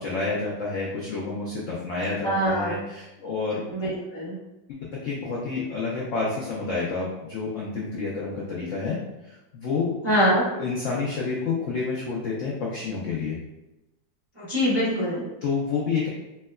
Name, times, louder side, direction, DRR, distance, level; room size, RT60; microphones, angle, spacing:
voice 1, 0.0-3.6 4.7-9.0 9.2-9.9 10.5-13.4 15.4-16.1, left 4 dB, 80° left, -4 dB, 0.7 m, -29 dB
voice 2, 2.2-2.7 3.7-4.4 10.0-10.4 14.3-15.3, equal, 25° right, -10 dB, 0.5 m, -24 dB
4.4 x 2.1 x 2.2 m, 0.98 s
omnidirectional pair, 2.0 m